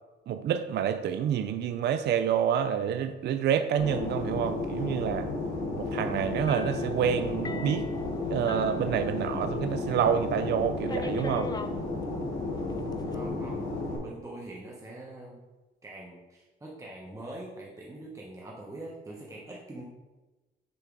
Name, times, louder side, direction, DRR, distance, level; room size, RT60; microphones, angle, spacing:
voice 1, 0.3-5.3 5.8-7.9 8.3-11.6, right 8 dB, 60° right, 10 dB, 0.4 m, -28 dB
Fixed-wing aircraft airplane, 3.8-14.0, left 2 dB, 90° left, 1.7 m, -33 dB
sound 1, 6.5-9.7 10.0-10.1 10.9-11.8 12.7-13.2, left 4 dB, 20° left, 0.4 m, -41 dB
voice 2, 13.1-13.6 14.0-15.4 15.8-19.8, right 1 dB, 15° right, -3 dB, 1.0 m, -43 dB
7.0 x 3.3 x 4.7 m, 1.2 s
cardioid pair, 90°, 20 cm